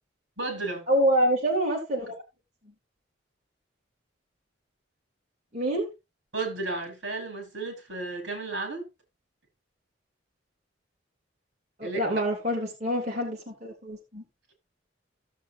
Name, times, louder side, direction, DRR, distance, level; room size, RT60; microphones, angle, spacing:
voice 1, 0.4-0.8 6.3-8.9 11.8-12.0, right 3 dB, 65° right, 4.3 m, -33 dB
voice 2, 0.9-2.2 5.5-5.9 11.8-14.2, right 1 dB, 35° right, 2.9 m, -26 dB
15.5 x 7.4 x 2.7 m
head